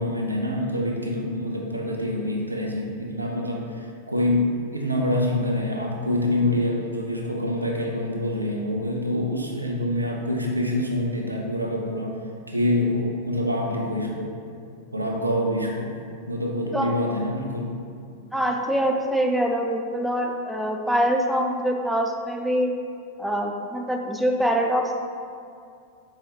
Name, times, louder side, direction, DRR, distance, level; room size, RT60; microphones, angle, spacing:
voice 1, 0.0-12.2 12.5-14.3 14.9-16.0 16.3-17.7, left 1 dB, 85° right, -1 dB, 0.5 m, -26 dB
voice 2, 18.3-22.7 23.2-24.9, equal, ahead, 1 dB, 0.3 m, -24 dB
4.6 x 2.8 x 3.1 m, 2.4 s
figure-of-eight pair, 90°, 0 cm